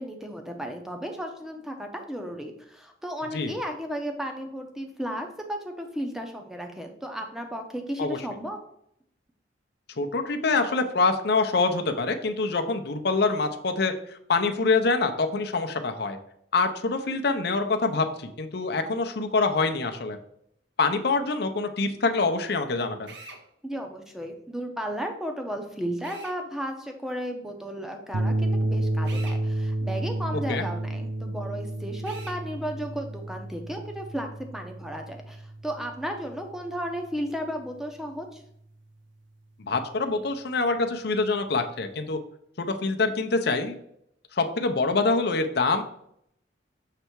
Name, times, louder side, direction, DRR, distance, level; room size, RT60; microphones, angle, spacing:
voice 1, 0.0-8.6 23.6-38.4, equal, ahead, 3 dB, 0.7 m, -34 dB
voice 2, 10.0-16.2 16.5-20.2 20.8-23.1 30.5-30.6 39.6-42.2 42.6-43.8 44.3-45.8, left 3 dB, 60° left, 6 dB, 0.7 m, -25 dB
Drill, 23.1-23.4 26.0-26.4 29.1-29.4 32.0-32.4, right 3 dB, 65° right, 1.0 m, -43 dB
sound 1, 28.1-36.6, right 2 dB, 90° right, 0.5 m, -30 dB
6.7 x 3.4 x 4.5 m, 0.72 s
head